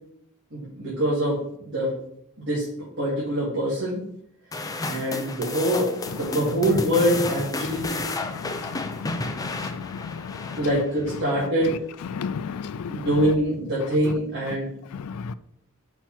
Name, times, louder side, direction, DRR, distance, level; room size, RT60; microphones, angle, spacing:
voice 1, 0.5-1.9 2.4-2.7 3.0-4.0 4.9-8.0 10.6-11.8 12.9-14.7, equal, 50° right, 2.4 m, -24 dB
sound 1, 4.5-11.0, left 2 dB, 15° left, 0.4 m, -32 dB
voice 2, 8.2-10.7 11.3-11.5 12.0-13.1 14.0-14.1 14.9-15.3, left 6 dB, 90° left, 0.4 m, -34 dB
5.5 x 4.6 x 5.9 m
head